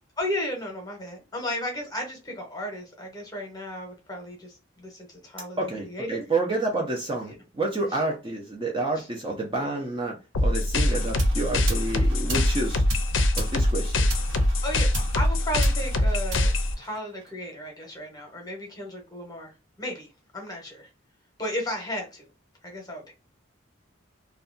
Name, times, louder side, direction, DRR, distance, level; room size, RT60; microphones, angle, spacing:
voice 1, 0.2-6.2 9.0-9.1 14.6-14.9 15.1-16.5 16.8-20.9 21.4-22.3 22.6-23.1, left 1 dB, 20° left, 0.8 m, -34 dB
voice 2, 5.6-10.2 10.4-12.9 13.4-14.1, right 2 dB, 25° right, 0.5 m, -29 dB
sound 1, 10.3-16.7, left 1 dB, 65° left, 0.5 m, -23 dB
sound 2, 10.9-17.4, right 2 dB, 70° right, 0.9 m, -37 dB
2.6 x 2.2 x 2.4 m
head